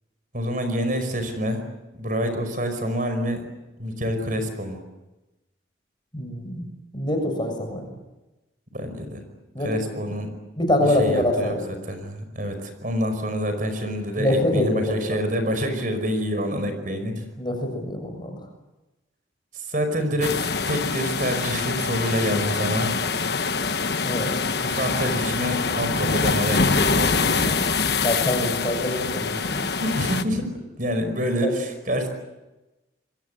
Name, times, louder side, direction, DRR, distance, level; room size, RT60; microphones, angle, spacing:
voice 1, 0.3-1.6 1.9-3.4 3.8-4.8 8.7-9.2 9.6-10.3 10.9-17.2 19.5-23.0 24.6-27.6 29.8-30.5 30.8-32.1, equal, 45° right, 7 dB, 5.2 m, -27 dB
voice 2, 6.1-6.7 6.9-7.9 9.5-9.7 10.6-11.6 14.2-15.0 17.4-18.4 24.0-24.3 28.0-29.7 31.4-31.5, left 1 dB, 25° left, 4 dB, 7.0 m, -24 dB
sound 1, 20.2-30.2, left 4 dB, 55° left, 1.2 m, -24 dB
29.0 x 23.0 x 8.0 m, 1.0 s
head